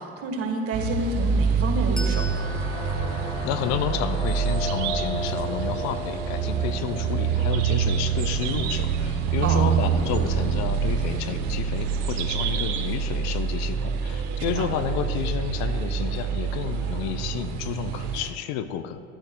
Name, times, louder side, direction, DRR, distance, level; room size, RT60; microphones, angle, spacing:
voice 1, 0.0-2.5 9.4-9.7 14.4-14.7, right 3 dB, 45° right, 4 dB, 1.5 m, -29 dB
sound 1, 0.7-18.3, right 6 dB, 60° right, 0.9 m, -26 dB
Bell, 1.9-5.0, equal, ahead, 1.0 m, -42 dB
sound 2, 2.2-10.1, equal, 20° left, 2.7 m, -36 dB
voice 2, 3.4-19.0, left 10 dB, 55° left, 10 dB, 0.6 m, -31 dB
13.5 x 11.5 x 2.2 m, 2.4 s
figure-of-eight pair, 60°, 32 cm